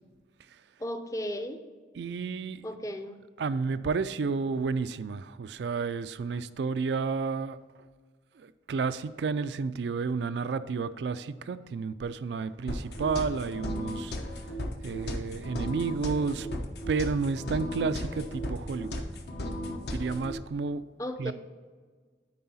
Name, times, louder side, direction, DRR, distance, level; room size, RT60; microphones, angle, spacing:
voice 1, 0.8-1.6 2.6-3.2 6.3-6.4 21.0-21.3, equal, 20° left, 7 dB, 0.5 m, -35 dB
voice 2, 2.0-2.6 3.4-7.6 8.4-14.1 14.8-16.5 16.9-19.0 19.9-20.8 21.2-21.3, right 4 dB, 75° right, 14 dB, 0.4 m, -31 dB
sound 1, 12.7-20.4, equal, 65° left, 1.0 m, -35 dB
9.5 x 4.7 x 4.1 m, 1.5 s
head